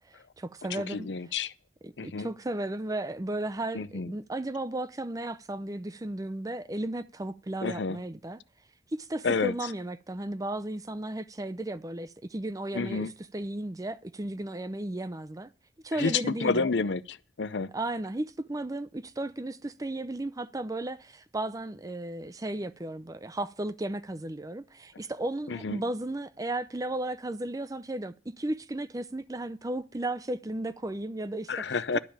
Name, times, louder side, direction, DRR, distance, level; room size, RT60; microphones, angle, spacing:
voice 1, 0.1-1.1 1.8-8.4 8.9-13.1 13.3-15.5 15.8-16.7 17.7-31.7, right 1 dB, 20° right, 0.6 m, -34 dB
voice 2, 0.7-1.5 2.0-2.3 3.7-4.1 7.6-8.0 9.2-9.5 12.7-13.1 15.9-17.7 25.5-25.8 31.5-32.0, left 4 dB, 90° left, 0.6 m, -30 dB
11.5 x 5.5 x 8.6 m
head